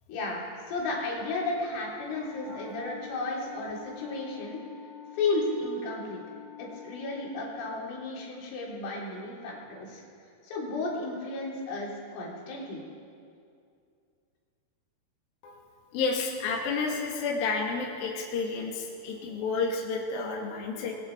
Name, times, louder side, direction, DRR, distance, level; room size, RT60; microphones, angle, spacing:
voice 1, 0.1-4.6 5.1-6.2 6.6-10.0 10.4-12.8, left 2 dB, 80° left, -3 dB, 6.0 m, -33 dB
Wind instrument woodwind instrument, 2.1-7.5, left 6 dB, 50° right, 9.4 m, -46 dB
voice 2, 2.4-2.8 15.4-15.6 15.9-21.0, left 4 dB, 55° left, -1 dB, 3.6 m, -31 dB
28.0 x 21.0 x 4.7 m, 2.4 s
omnidirectional pair, 5.7 m